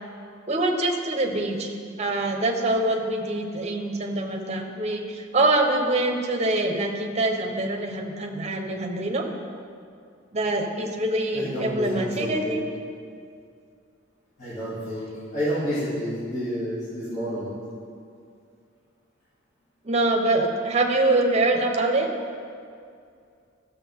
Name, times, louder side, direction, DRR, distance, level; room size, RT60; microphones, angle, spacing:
voice 1, 0.5-1.7 2.0-9.3 10.3-12.6 19.8-22.1, right 2 dB, 35° right, 3 dB, 0.9 m, -24 dB
voice 2, 11.3-12.5 14.4-17.5, equal, 35° left, -12 dB, 2.5 m, -29 dB
14.0 x 6.9 x 3.6 m, 2.3 s
head